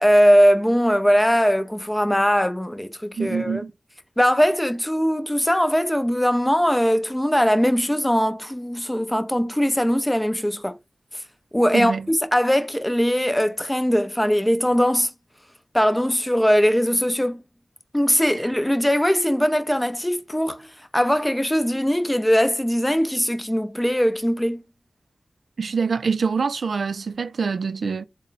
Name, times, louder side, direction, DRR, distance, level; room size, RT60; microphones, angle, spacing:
voice 1, 0.0-3.6 4.2-10.8 11.5-15.1 15.7-17.4 17.9-24.6, equal, 10° left, 0.6 m, -20 dB
voice 2, 3.2-3.7 11.7-12.1 25.6-28.0, right 5 dB, 85° right, 0.3 m, -25 dB
3.6 x 2.2 x 3.9 m
cardioid pair, 55°, 0 cm